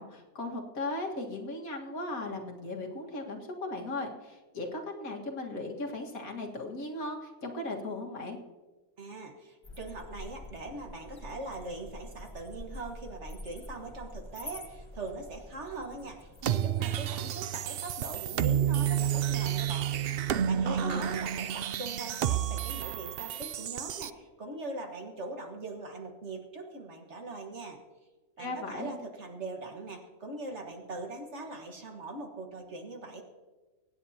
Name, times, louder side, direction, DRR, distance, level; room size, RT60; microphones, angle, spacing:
voice 1, 0.0-8.4 20.6-21.1 28.4-29.0, left 2 dB, 70° left, 0 dB, 2.2 m, -37 dB
voice 2, 9.0-19.9 20.5-27.8 28.4-33.2, right 2 dB, 50° right, 3 dB, 1.8 m, -41 dB
sound 1, 9.6-17.2, left 1 dB, 20° left, 1.2 m, -47 dB
sound 2, 16.4-24.1, right 10 dB, 80° right, 0.5 m, -30 dB
23.5 x 9.5 x 2.8 m, 1.3 s
omnidirectional pair, 1.5 m